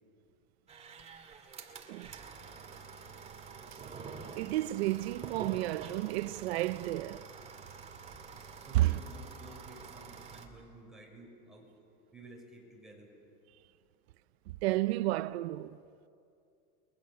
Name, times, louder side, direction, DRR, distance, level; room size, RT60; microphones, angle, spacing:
sound 1, 0.7-10.5, right 5 dB, 20° right, 2.4 m, -47 dB
voice 1, 4.3-7.3 8.7-9.0 14.5-15.8, right 17 dB, 90° right, 0.6 m, -31 dB
voice 2, 8.6-11.7 12.1-13.1, right 2 dB, ahead, 6.3 m, -52 dB
30.0 x 23.0 x 7.2 m
supercardioid pair, 150°, 31 cm